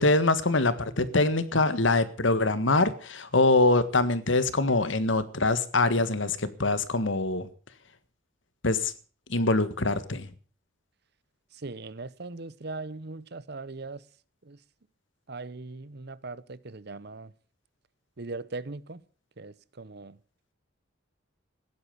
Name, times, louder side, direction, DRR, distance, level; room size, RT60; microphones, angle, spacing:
voice 1, 0.0-7.5 8.6-8.9 9.3-10.3, left 2 dB, 75° left, 1.6 m, -24 dB
voice 2, 11.5-14.0 14.4-14.6 15.3-17.3 18.2-19.0 19.4-20.2, right 3 dB, 55° right, 0.9 m, -39 dB
16.0 x 11.5 x 6.8 m
head